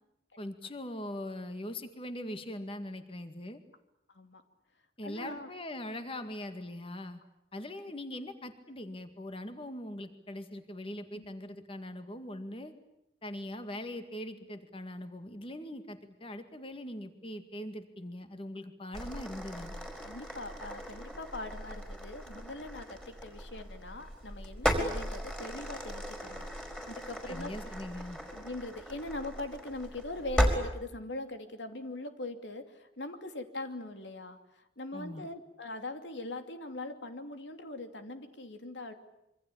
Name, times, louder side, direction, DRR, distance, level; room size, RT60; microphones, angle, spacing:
voice 1, 0.4-3.6 5.0-7.2 7.5-12.7 13.2-19.7 27.3-28.2 34.9-35.3, left 1 dB, 30° left, 8 dB, 2.1 m, -41 dB
voice 2, 4.1-4.4 5.0-5.5 11.1-11.3 20.0-27.5 28.3-38.9, left 2 dB, 90° left, 7 dB, 2.8 m, -41 dB
sound 1, 18.9-30.6, equal, 5° left, 4.7 m, -36 dB
26.5 x 24.5 x 8.7 m, 0.84 s
head